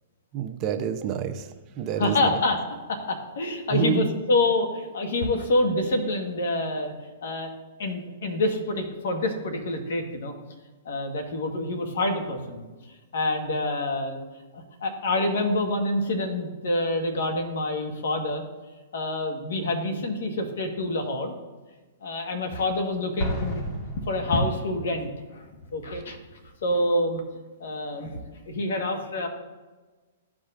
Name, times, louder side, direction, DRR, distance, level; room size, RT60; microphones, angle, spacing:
voice 1, 0.3-1.5 1.8-2.3 3.7-4.1, right 8 dB, 35° right, 6 dB, 0.7 m, -27 dB
voice 2, 2.0-2.6 2.9-6.9 7.2-7.5 7.8-10.3 10.8-12.6 13.1-14.2 14.5-18.4 18.9-21.3 22.0-23.6 24.1-26.2 26.6-27.2 27.6-28.2 28.4-29.3, left 2 dB, 70° left, 4 dB, 1.3 m, -27 dB
Explosion, 23.2-25.0, equal, 35° left, 1.5 m, -32 dB
14.0 x 4.9 x 2.5 m, 1.3 s
hypercardioid pair, 135°, 0 cm